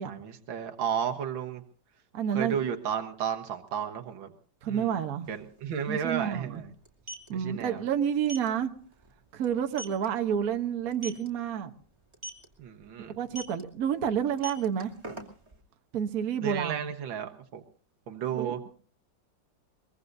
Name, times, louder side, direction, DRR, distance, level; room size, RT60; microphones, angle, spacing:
voice 1, 0.0-1.6 2.3-4.3 4.7-4.9 5.3-6.7 7.3-7.8 12.6-13.1 16.4-17.6 18.1-18.7, right 8 dB, 90° right, 2.0 m, -33 dB
voice 2, 2.1-2.6 4.6-5.3 5.9-6.6 7.3-8.7 9.3-11.7 13.2-14.9 15.9-16.8 18.3-18.6, right 8 dB, 55° right, 1.3 m, -29 dB
sound 1, 5.2-5.3 5.6-5.8 6.8-7.3 8.3-8.5 8.9-9.1 9.4-9.5 9.8-10.1 10.9-11.3 12.1-12.5 13.3-13.6 14.3-15.6, right 1 dB, 15° right, 2.5 m, -39 dB
23.0 x 22.0 x 2.7 m
omnidirectional pair, 2.1 m